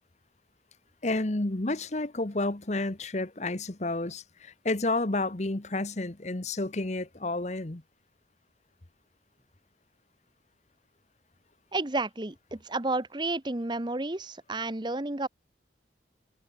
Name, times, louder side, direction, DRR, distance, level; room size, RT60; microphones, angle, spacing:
voice 1, 1.0-7.8, left 2 dB, 40° left, 1.2 m, -30 dB
voice 2, 11.7-15.3, right 2 dB, 25° right, 1.0 m, -31 dB
head